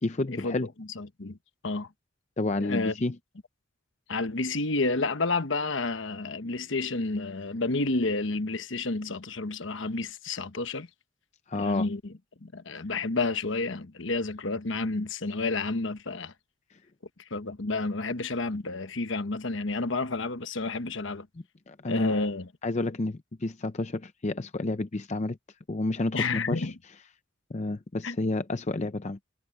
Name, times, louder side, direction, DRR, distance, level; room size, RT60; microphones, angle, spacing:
voice 1, 0.0-0.7 2.4-3.2 11.5-11.9 21.7-22.3 22.6-25.4 25.7-26.7 27.5-29.2, left 2 dB, 35° left, 0.5 m, -30 dB
voice 2, 1.0-1.4 1.6-1.9 2.6-2.9 4.1-10.9 11.6-12.0 12.4-16.3 17.3-21.3 21.9-22.5 26.1-26.7 28.0-28.2, left 3 dB, 65° left, 1.1 m, -30 dB
head